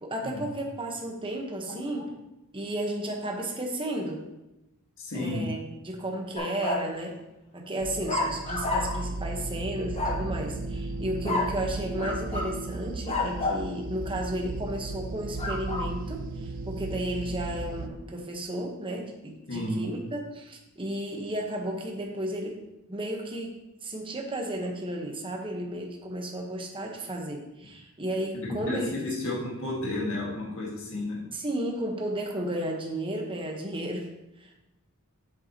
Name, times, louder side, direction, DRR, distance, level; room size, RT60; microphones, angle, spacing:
voice 1, 0.0-2.1 2.5-4.2 5.1-5.6 5.8-7.2 7.5-22.6 22.9-23.6 23.8-28.9 31.3-34.1 34.4-34.5, right 1 dB, 25° right, 0 dB, 1.1 m, -33 dB
voice 2, 1.7-2.1 5.0-5.5 19.5-20.0 28.4-31.2, left 1 dB, 65° left, -3 dB, 1.8 m, -32 dB
sound 1, 6.4-6.9 8.1-9.1 10.0-10.3 11.2-11.6 12.0-12.5 13.1-13.7 15.4-15.9, left 2 dB, 30° left, 1.1 m, -30 dB
sound 2, 7.8-17.9, right 3 dB, 40° right, 0.4 m, -35 dB
7.8 x 7.3 x 2.9 m, 0.92 s
head